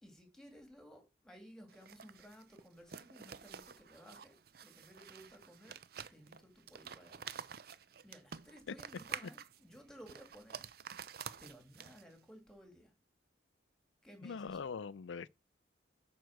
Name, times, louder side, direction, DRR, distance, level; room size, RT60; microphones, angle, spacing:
voice 1, 0.0-4.4 4.6-5.8 6.1-7.5 8.0-10.6 11.4-12.9 14.0-14.8, equal, 5° left, 2.3 m, -57 dB
sound 1, 1.7-12.2, right 7 dB, 55° right, 0.5 m, -49 dB
voice 2, 14.2-15.3, left 5 dB, 85° left, 0.4 m, -42 dB
9.2 x 4.6 x 6.4 m
head